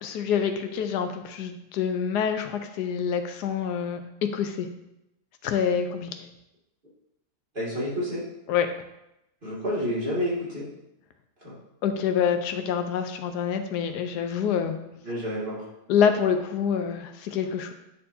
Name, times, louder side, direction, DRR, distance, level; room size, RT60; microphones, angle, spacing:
voice 1, 0.0-4.7 5.4-6.2 8.5-8.7 11.8-14.8 15.9-17.7, left 7 dB, 85° left, 7 dB, 1.2 m, -26 dB
voice 2, 7.5-8.2 9.4-10.7 11.4-11.5 15.0-15.7, equal, 30° right, -8 dB, 2.4 m, -29 dB
9.8 x 4.4 x 2.7 m, 0.88 s
omnidirectional pair, 1.7 m